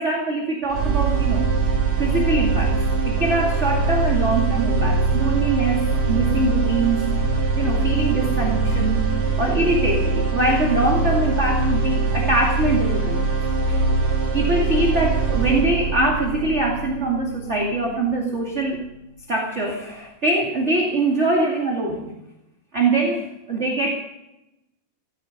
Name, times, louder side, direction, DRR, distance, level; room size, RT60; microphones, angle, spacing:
voice 1, 0.0-2.8 3.0-7.1 7.3-13.2 13.7-13.8 14.3-18.8 19.3-22.1 22.7-24.0, right 2 dB, 25° right, 0 dB, 2.2 m, -23 dB
sound 1, 0.7-18.7, right 4 dB, 50° right, 5.0 m, -22 dB
17.5 x 15.0 x 5.3 m, 0.93 s
omnidirectional pair, 3.8 m